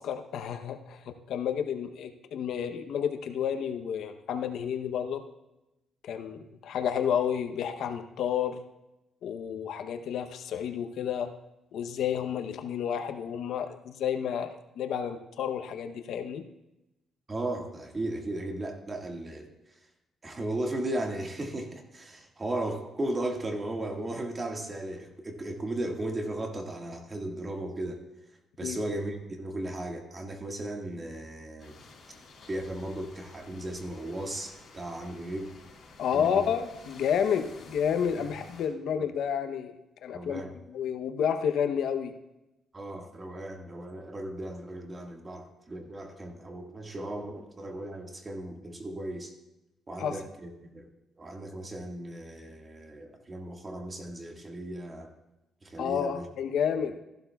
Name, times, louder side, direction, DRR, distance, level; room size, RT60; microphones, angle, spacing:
voice 1, 0.0-5.2 6.0-8.6 9.2-11.3 11.7-16.4 28.6-28.8 36.0-39.7 40.0-40.4 40.7-42.1 50.0-50.1 55.8-56.9, left 8 dB, 75° left, 7 dB, 0.8 m, -30 dB
voice 2, 17.3-19.8 20.2-28.0 28.6-31.7 32.5-35.5 36.1-36.5 38.1-38.3 38.9-39.1 40.1-40.5 42.7-49.3 49.9-50.9 51.2-55.1 55.6-56.3 56.7-56.9, right 1 dB, 30° right, 3 dB, 1.7 m, -36 dB
sound 1, 31.6-38.7, left 3 dB, 50° left, 3.9 m, -52 dB
14.5 x 11.5 x 2.3 m, 0.94 s
cardioid pair, 90°, 0 cm